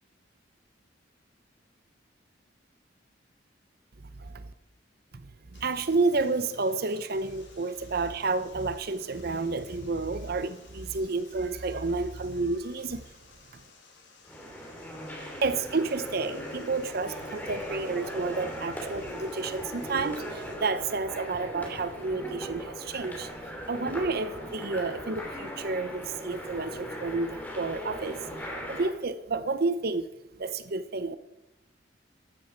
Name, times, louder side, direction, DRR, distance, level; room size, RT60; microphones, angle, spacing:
voice 1, 5.1-13.0 13.5-13.6 15.4-23.3 23.7-30.1 30.3-31.2, right 3 dB, 55° right, 13 dB, 0.7 m, -30 dB
Water, 5.5-20.5, left 4 dB, 65° left, 3.5 m, -56 dB
sound 1, 14.3-28.9, equal, 10° left, 2.9 m, -38 dB
15.0 x 12.5 x 4.4 m, 0.92 s
head